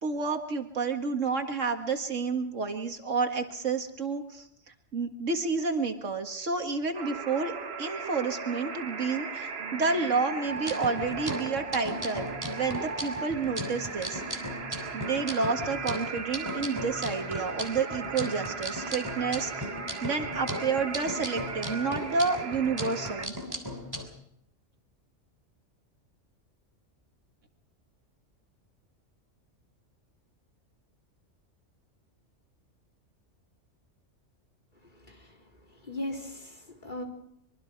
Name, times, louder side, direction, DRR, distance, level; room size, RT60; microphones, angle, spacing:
voice 1, 0.0-4.4 4.9-14.2 14.9-19.5 20.0-23.3, right 4 dB, 80° right, 5 dB, 2.2 m, -30 dB
sound 1, 6.9-23.3, right 5 dB, 55° right, 1.4 m, -38 dB
sound 2, 10.5-24.1, equal, 15° right, 3.1 m, -37 dB
voice 2, 34.9-35.3 35.8-37.0, left 1 dB, 40° left, 3 dB, 4.1 m, -38 dB
24.5 x 23.5 x 4.7 m, 0.74 s
omnidirectional pair, 1.3 m